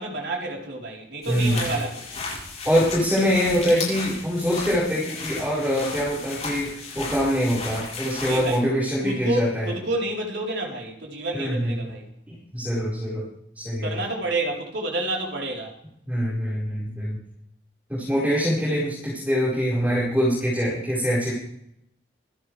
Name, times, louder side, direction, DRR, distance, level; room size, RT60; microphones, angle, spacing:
voice 1, 0.0-2.2 8.2-8.6 9.0-12.1 13.8-15.7, right 2 dB, 80° right, -1 dB, 4.1 m, -29 dB
sound 1, 1.2-8.6, left 4 dB, 40° left, 7.9 m, -34 dB
voice 2, 1.3-1.6 2.6-9.7 11.3-11.8 12.3-13.2 13.5-14.0 16.1-17.2 17.9-21.3, equal, 10° right, -8 dB, 5.0 m, -24 dB
26.5 x 12.0 x 3.4 m, 0.74 s
head